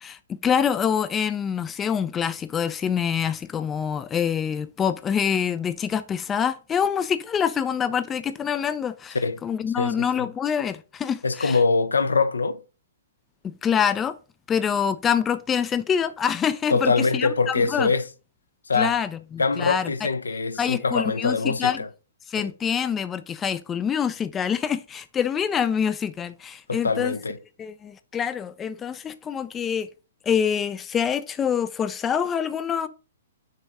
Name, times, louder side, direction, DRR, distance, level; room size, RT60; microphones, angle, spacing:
voice 1, 0.0-9.2 9.4-11.6 13.4-14.1 14.5-17.9 18.7-19.9 20.6-21.8 22.3-27.1 27.6-29.9 30.2-32.9, left 7 dB, 15° left, 0.4 m, -26 dB
voice 2, 9.8-10.1 11.2-12.6 16.7-18.0 18.7-19.0 19.4-21.9 22.4-22.5 26.7-27.4, left 4 dB, 75° left, 0.6 m, -23 dB
6.6 x 3.0 x 4.8 m
figure-of-eight pair, 115°, 0 cm